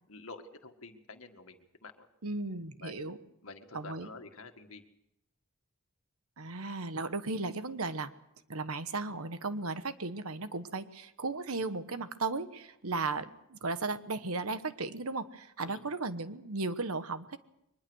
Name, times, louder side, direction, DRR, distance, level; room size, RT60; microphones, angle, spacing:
voice 1, 0.1-2.1 2.8-3.1 3.4-4.8 15.6-15.9, left 3 dB, 75° left, 6 dB, 1.9 m, -49 dB
voice 2, 2.2-3.2 3.7-4.1 6.4-8.1 8.5-17.4, right 3 dB, 85° right, 11 dB, 1.2 m, -35 dB
23.0 x 20.5 x 6.4 m, 0.82 s
head